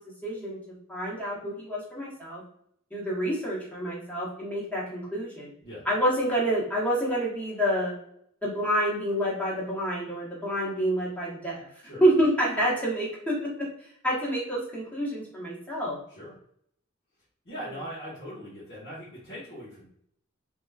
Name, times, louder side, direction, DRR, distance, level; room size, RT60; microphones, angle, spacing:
voice 1, 0.2-0.6 0.9-2.4 2.9-5.5 5.8-7.9 8.4-11.7 12.0-13.7 14.0-16.0, right 1 dB, 10° left, -5 dB, 1.1 m, -28 dB
voice 2, 17.4-19.8, equal, 55° left, -10 dB, 1.3 m, -40 dB
3.4 x 3.0 x 2.3 m, 0.69 s
head